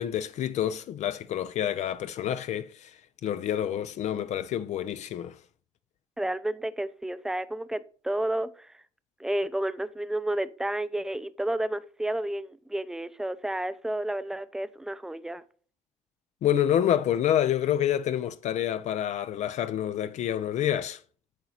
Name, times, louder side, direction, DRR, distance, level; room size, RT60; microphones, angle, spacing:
voice 1, 0.0-2.9 3.2-5.4 16.4-21.0, left 10 dB, 60° left, 0.4 m, -28 dB
voice 2, 6.2-8.7 9.2-15.4, right 1 dB, 5° right, 0.5 m, -31 dB
8.1 x 4.7 x 4.1 m
supercardioid pair, 75°, 14 cm